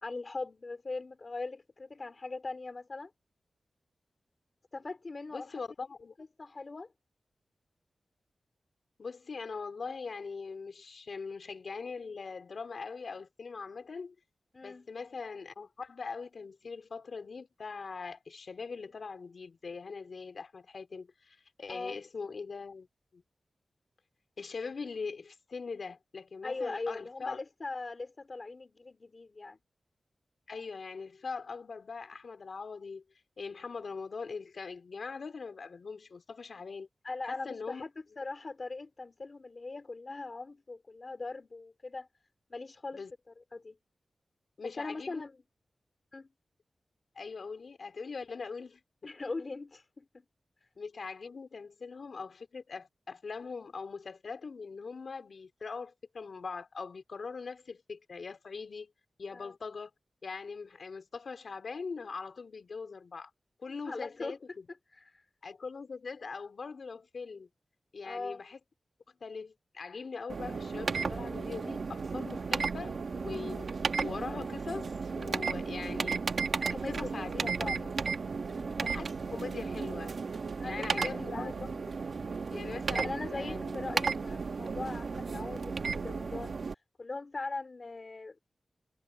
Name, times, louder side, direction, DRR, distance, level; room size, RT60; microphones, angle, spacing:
voice 1, 0.0-3.1 4.7-5.6 6.2-6.9 14.5-14.9 21.7-22.0 26.4-29.6 37.0-37.9 38.2-42.1 42.5-43.0 43.4-43.8 44.6-45.3 46.1-46.3 49.0-50.2 59.3-59.5 63.8-64.6 64.9-65.2 68.0-68.4 76.7-77.3 78.5-78.8 80.6-81.5 82.9-86.6 87.0-88.4, left 3 dB, 40° left, 2.8 m, -40 dB
voice 2, 5.3-6.1 9.0-14.2 14.6-22.9 23.1-23.2 24.4-27.4 30.5-33.0 33.4-36.9 37.2-37.8 42.9-43.1 44.6-45.2 47.2-48.8 50.8-58.9 59.2-59.9 60.2-63.3 63.6-64.7 65.4-67.5 67.9-68.6 69.2-76.2 76.7-77.9 78.8-80.1 80.6-81.8 82.5-83.8, left 4 dB, 65° left, 3.7 m, -41 dB
sound 1, 70.3-86.7, right 4 dB, 65° right, 1.5 m, -34 dB
wide cardioid pair, 115°, 0 cm